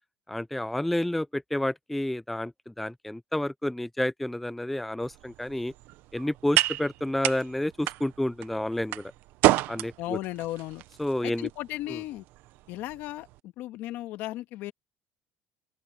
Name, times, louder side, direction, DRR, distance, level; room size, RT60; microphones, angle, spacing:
voice 1, 0.3-5.7 6.1-9.1 9.7-10.2 11.0-11.5 11.9-12.0, left 1 dB, 5° left, 0.4 m, -30 dB
sound 1, 5.0-13.4, right 17 dB, 70° right, 0.8 m, -31 dB
voice 2, 10.0-10.8 11.2-12.2 12.7-14.7, left 16 dB, 65° left, 1.7 m, -35 dB
open air
cardioid pair, 130°, 4 cm